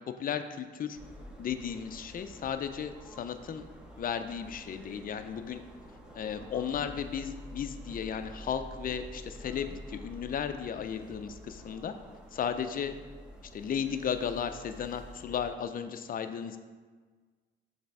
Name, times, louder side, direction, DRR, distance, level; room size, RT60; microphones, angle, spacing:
voice 1, 0.2-1.0 1.4-3.7 4.0-5.6 6.1-11.9 12.3-12.9 13.5-16.6, left 8 dB, 45° left, 9 dB, 0.5 m, -35 dB
sound 1, 0.9-15.5, equal, 5° right, 0.9 m, -48 dB
6.5 x 3.3 x 4.7 m, 1.4 s
cardioid pair, 90°, 20 cm